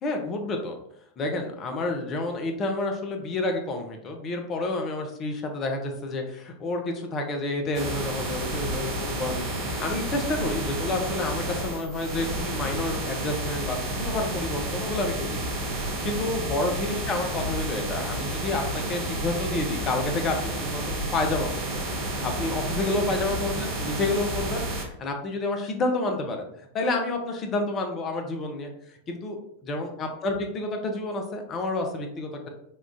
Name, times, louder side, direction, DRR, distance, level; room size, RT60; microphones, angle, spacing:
voice 1, 0.0-0.8 1.2-15.4 16.0-21.8 22.1-26.5 26.7-32.5, left 2 dB, 30° left, 4 dB, 0.6 m, -29 dB
sound 1, 7.7-24.8, right 1 dB, 35° right, 0.7 m, -30 dB
3.6 x 2.3 x 2.5 m, 0.73 s
figure-of-eight pair, 90°, 0 cm